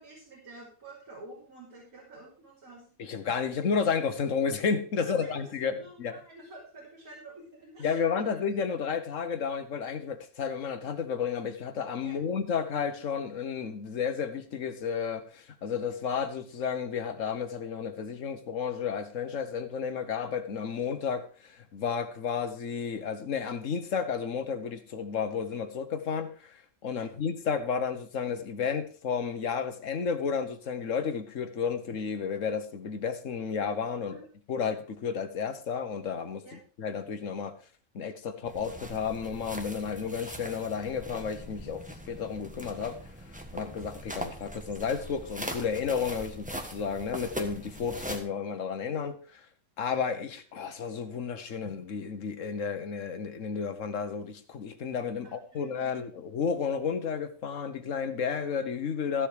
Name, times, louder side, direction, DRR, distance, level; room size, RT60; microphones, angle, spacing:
voice 1, 0.0-3.2 5.0-8.3 12.0-12.2 26.9-27.1 34.1-34.3 36.4-36.6 55.2-56.1, right 1 dB, 90° right, 3.6 m, -49 dB
voice 2, 3.0-6.2 7.8-34.2 34.5-36.4 36.8-37.5 37.9-43.1 43.5-49.4 49.8-59.3, left 6 dB, 65° left, 1.5 m, -32 dB
sound 1, 38.4-48.2, equal, 5° right, 1.2 m, -41 dB
14.0 x 6.8 x 4.9 m
omnidirectional pair, 1.5 m